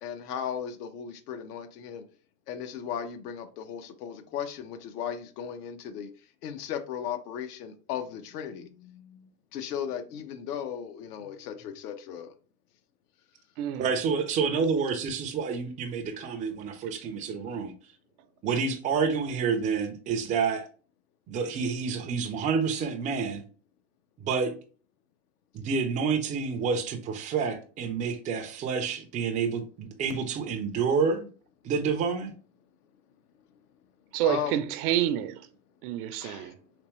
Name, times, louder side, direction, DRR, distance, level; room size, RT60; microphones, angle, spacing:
voice 1, 0.0-2.0 2.5-6.1 6.4-9.2 9.5-12.3 34.2-34.6 36.2-36.5, left 8 dB, 75° left, 0.8 m, -36 dB
voice 2, 13.8-17.7 18.4-20.7 21.3-23.4 24.2-24.5 25.5-31.3 31.6-32.3, right 5 dB, 20° right, 0.3 m, -28 dB
voice 3, 34.1-35.5 35.8-36.5, right 11 dB, 70° right, 0.6 m, -28 dB
3.5 x 2.9 x 3.0 m
supercardioid pair, 115°, 47 cm